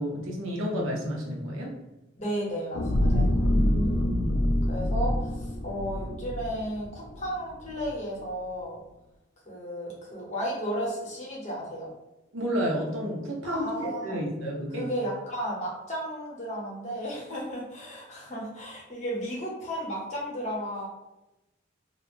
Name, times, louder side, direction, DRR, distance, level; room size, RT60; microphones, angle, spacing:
voice 1, 0.0-1.7 3.1-4.6 12.3-14.9, equal, 80° right, -1 dB, 0.7 m, -31 dB
voice 2, 2.2-3.4 4.6-8.8 9.4-11.9 13.4-14.2 14.7-20.9, equal, 35° left, -4 dB, 0.8 m, -34 dB
sound 1, 2.7-7.2 7.7-7.9, left 1 dB, 60° left, 0.4 m, -26 dB
2.3 x 2.1 x 3.0 m, 0.99 s
head